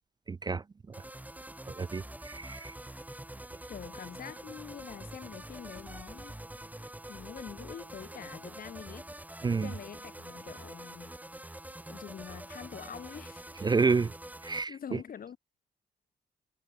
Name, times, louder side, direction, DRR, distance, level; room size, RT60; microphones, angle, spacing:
voice 1, 0.3-1.0 1.7-2.7 9.4-9.7 13.6-14.1 14.4-15.0, right 4 dB, 25° right, 0.4 m, -30 dB
sound 1, 0.9-14.6, right 1 dB, 10° right, 2.2 m, -46 dB
voice 2, 3.7-6.4 6.7-9.1 9.6-11.2 11.9-13.5 14.7-15.4, left 8 dB, 55° left, 0.9 m, -45 dB
cardioid pair, 70°, 18 cm